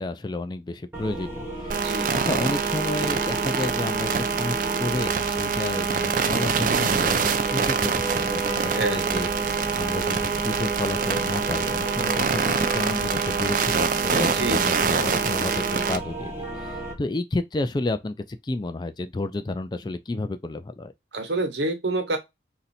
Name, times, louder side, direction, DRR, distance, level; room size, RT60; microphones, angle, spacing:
voice 1, 0.0-9.3 9.8-20.9, left 2 dB, 25° left, 0.3 m, -31 dB
sound 1, 0.9-16.9, right 1 dB, 10° right, 1.5 m, -34 dB
sound 2, 1.7-16.0, right 6 dB, 45° right, 0.5 m, -25 dB
voice 2, 1.7-2.1 8.7-9.1 14.3-14.9 21.1-22.2, right 2 dB, 65° right, 1.1 m, -28 dB
4.2 x 2.7 x 4.2 m
head